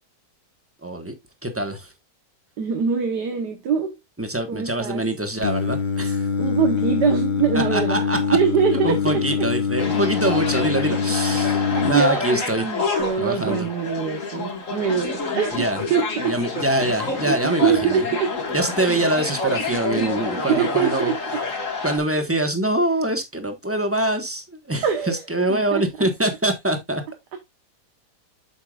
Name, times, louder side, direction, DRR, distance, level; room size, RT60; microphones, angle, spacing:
voice 1, 0.8-1.1 1.4-1.9 4.2-6.3 7.5-8.4 8.7-12.6 13.2-13.7 15.5-15.8 16.2-18.0 18.5-21.1 21.8-27.0, right 1 dB, 10° right, 1.3 m, -24 dB
voice 2, 2.6-4.0 4.5-5.0 6.4-9.5 11.7-16.4 16.9-18.4 19.7-20.1 20.4-21.4 24.8-25.2 25.5-26.1, right 7 dB, 90° right, 1.8 m, -24 dB
Singing, 5.4-11.9, left 6 dB, 90° left, 0.4 m, -24 dB
sound 1, 9.8-22.0, left 4 dB, 50° left, 2.2 m, -28 dB
8.5 x 6.9 x 2.4 m
omnidirectional pair, 1.7 m